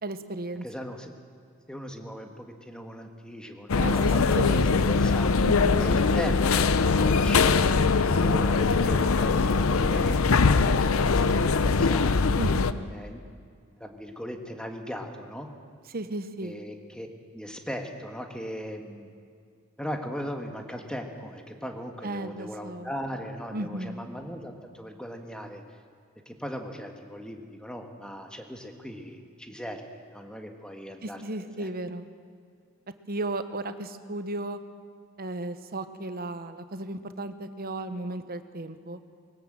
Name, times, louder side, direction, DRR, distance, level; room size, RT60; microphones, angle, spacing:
voice 1, 0.0-0.6 3.8-4.8 5.4-5.9 8.9-9.1 12.4-12.8 15.9-16.6 22.0-22.9 23.5-24.1 31.0-32.1 33.1-34.6 35.2-39.0, right 2 dB, 45° right, 10 dB, 1.1 m, -35 dB
voice 2, 0.6-1.1 1.7-5.3 5.8-12.1 12.9-13.2 13.8-15.5 16.4-17.1 17.3-19.1 19.8-25.6 26.2-31.2 31.6-31.7, equal, 5° left, 4 dB, 1.6 m, -38 dB
sound 1, 3.7-12.7, left 4 dB, 85° left, 0.7 m, -22 dB
20.5 x 18.0 x 7.6 m, 2.2 s
head